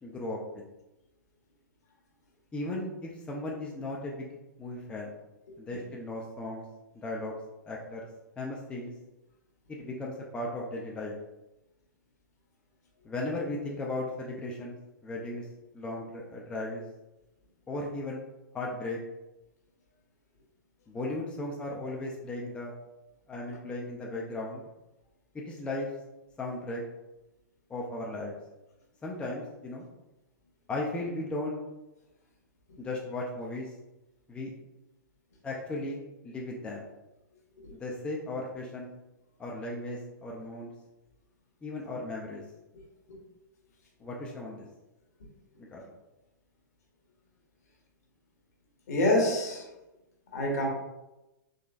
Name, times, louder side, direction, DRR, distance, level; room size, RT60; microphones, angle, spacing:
voice 1, 0.0-0.6 2.5-4.3 4.6-5.1 5.6-6.6 6.9-7.4 7.6-8.0 8.4-8.9 9.7-11.2 13.0-14.8 15.0-15.5 15.7-16.8 17.7-18.2 18.5-19.0 20.9-22.7 23.3-24.6 25.3-25.9 26.4-26.8 27.7-28.4 29.0-29.9 30.7-31.6 32.8-33.7 34.3-34.5 35.4-36.9 37.7-38.9 39.4-40.7 41.6-42.4 44.0-44.6 45.7-45.9, left 2 dB, 10° left, -3 dB, 0.4 m, -36 dB
voice 2, 48.9-49.7 50.3-50.7, left 1 dB, 55° left, 0 dB, 1.0 m, -27 dB
3.8 x 3.1 x 2.4 m, 1.0 s
figure-of-eight pair, 110°, 10 cm